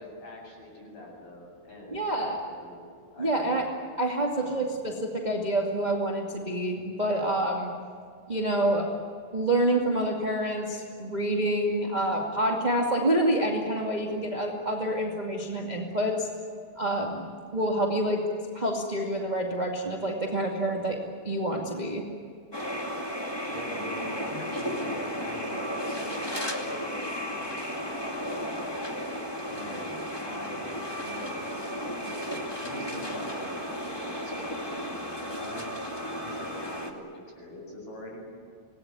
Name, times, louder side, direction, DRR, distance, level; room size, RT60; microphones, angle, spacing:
voice 1, 0.0-2.9 3.1-3.6 4.3-4.8 23.5-28.7 29.5-31.7 32.0-34.1 34.3-35.7 36.2-37.1 37.4-38.3, left 1 dB, 35° left, -1 dB, 8.5 m, -43 dB
voice 2, 1.9-2.4 3.2-3.6 4.0-7.7 8.3-8.8 9.3-16.3 16.8-17.2 17.5-18.2 18.5-21.0 21.2-22.0, right 1 dB, 15° right, -1 dB, 1.6 m, -27 dB
sound 1, 22.5-36.9, equal, 10° left, 1.5 m, -34 dB
26.5 x 20.0 x 9.7 m, 2.2 s
omnidirectional pair, 4.3 m